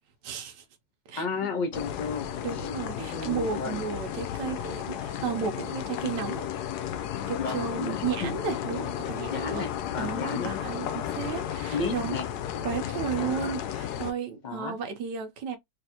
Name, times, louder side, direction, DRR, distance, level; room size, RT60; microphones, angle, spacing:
voice 1, 0.2-0.6 1.1-1.3 2.4-6.5 7.3-9.7 10.0-12.2 12.6-15.6, right 7 dB, 85° right, 1.5 m, -33 dB
voice 2, 1.1-2.7 3.0-3.8 7.4-8.3 9.3-10.6 11.7-12.3 13.2-13.4 14.4-14.7, left 4 dB, 35° left, 0.9 m, -33 dB
sound 1, 1.7-14.1, left 10 dB, 75° left, 1.1 m, -33 dB
3.3 x 3.2 x 2.8 m
omnidirectional pair, 1.8 m